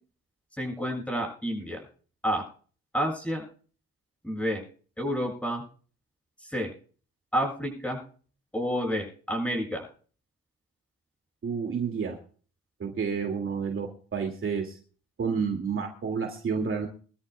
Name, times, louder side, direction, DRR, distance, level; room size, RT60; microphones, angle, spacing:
voice 1, 0.6-1.8 2.2-2.4 2.9-3.4 4.2-4.6 5.0-5.6 6.4-6.7 7.3-8.0 8.5-9.9, equal, 5° left, 0 dB, 7.7 m, -29 dB
voice 2, 11.4-12.2 12.8-14.8 15.2-16.9, right 6 dB, 45° right, 2 dB, 2.5 m, -30 dB
24.0 x 13.0 x 2.4 m, 0.42 s
cardioid pair, 90°, 30 cm